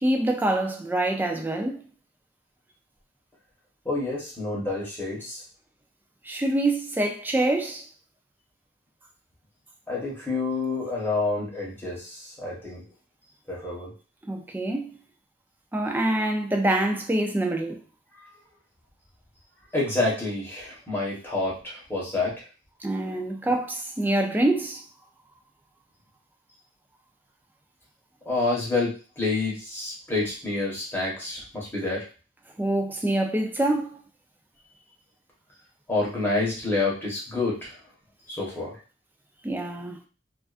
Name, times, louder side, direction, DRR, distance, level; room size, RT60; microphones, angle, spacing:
voice 1, 0.0-1.8 6.2-7.9 14.3-15.0 15.7-17.8 22.8-24.8 32.6-34.0 39.4-40.0, right 1 dB, 10° right, 0.3 m, -25 dB
voice 2, 3.8-5.4 9.9-12.8 13.5-13.9 18.2-18.3 19.7-22.4 23.0-23.2 28.2-32.0 35.9-37.8 38.3-38.8, left 3 dB, 10° left, 0.9 m, -28 dB
2.4 x 2.4 x 2.4 m
head